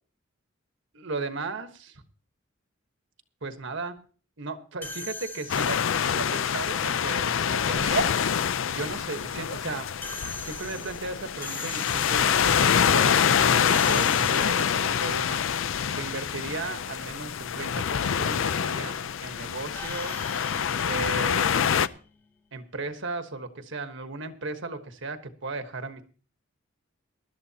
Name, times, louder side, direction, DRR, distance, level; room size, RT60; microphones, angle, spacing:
voice 1, 0.9-2.0 3.4-4.0 4.4-8.1 8.7-9.9 10.4-15.4 15.9-20.2 20.8-21.9 22.5-26.0, right 3 dB, 60° right, 8 dB, 1.3 m, -35 dB
sound 1, 4.8-6.1 10.0-12.5 13.6-14.9 19.7-22.3, left 2 dB, 10° left, 1.6 m, -41 dB
sound 2, 5.5-21.9, left 8 dB, 65° left, 0.5 m, -26 dB
20.0 x 12.5 x 2.9 m, 0.40 s
head